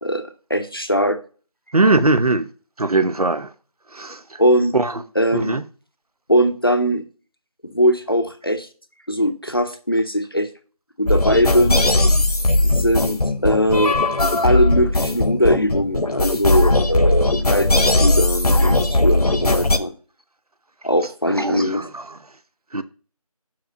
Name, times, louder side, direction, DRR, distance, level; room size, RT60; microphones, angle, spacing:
voice 1, 0.5-1.2 4.4-4.7 5.1-5.6 6.3-7.0 7.6-8.7 9.1-10.5 11.0-11.8 12.6-13.2 13.4-13.9 14.4-19.9 20.8-21.9, equal, 40° left, 0.7 m, -20 dB
voice 2, 1.7-2.5 2.8-3.5 3.9-4.4 4.7-4.9 5.3-5.6 21.4-22.2 22.7-22.8, right 2 dB, 75° right, 0.8 m, -20 dB
sound 1, 11.1-19.8, left 2 dB, 85° left, 1.1 m, -18 dB
6.0 x 4.9 x 5.2 m
figure-of-eight pair, 180°, 19 cm